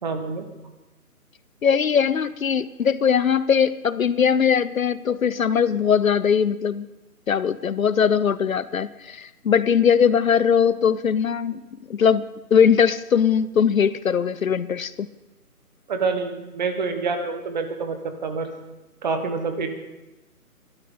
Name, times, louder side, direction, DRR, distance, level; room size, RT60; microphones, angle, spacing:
voice 1, 0.0-0.4 15.9-18.0 18.2-18.5 19.0-19.7, right 4 dB, 30° right, 7 dB, 1.4 m, -26 dB
voice 2, 1.6-6.9 7.3-11.6 11.9-12.2 12.5-15.1, left 7 dB, 60° left, 17 dB, 0.6 m, -20 dB
21.0 x 12.5 x 3.8 m, 1.0 s
figure-of-eight pair, 150°, 45 cm